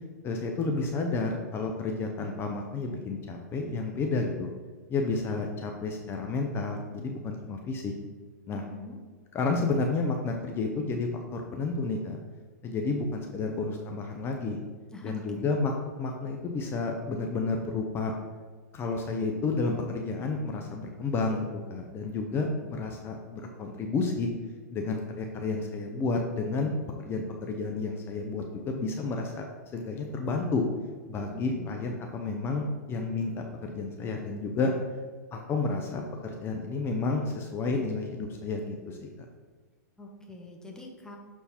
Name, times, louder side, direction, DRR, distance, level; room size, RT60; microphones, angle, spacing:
voice 1, 0.2-4.5 4.9-7.9 8.5-8.6 9.3-12.2 12.6-14.6 15.0-15.7 16.0-18.1 18.7-24.3 24.7-26.7 27.0-29.5 29.7-30.6 31.1-34.7 35.3-39.1, left 3 dB, 25° left, 2 dB, 0.7 m, -31 dB
voice 2, 8.5-9.0 14.9-15.5 31.3-31.7 40.0-41.2, left 1 dB, 5° left, 0 dB, 1.1 m, -43 dB
6.7 x 4.6 x 4.4 m, 1.5 s
hypercardioid pair, 125°, 10 cm